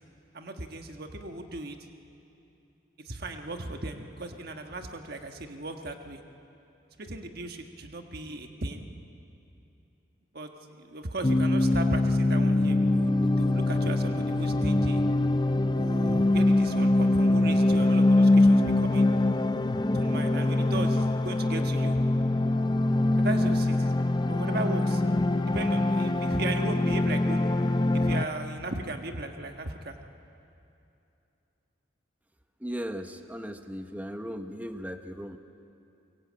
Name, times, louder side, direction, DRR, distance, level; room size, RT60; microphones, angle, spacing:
voice 1, 0.3-1.8 3.0-6.2 7.0-8.9 10.3-15.0 15.7-19.1 19.9-22.0 23.2-23.9 24.3-27.5 27.9-29.9, right 2 dB, 50° right, 5 dB, 1.4 m, -37 dB
sound 1, 11.2-28.2, left 2 dB, 20° left, 0.5 m, -23 dB
voice 2, 32.6-35.4, equal, 10° right, 7 dB, 1.0 m, -37 dB
23.5 x 22.5 x 8.6 m, 2.7 s
head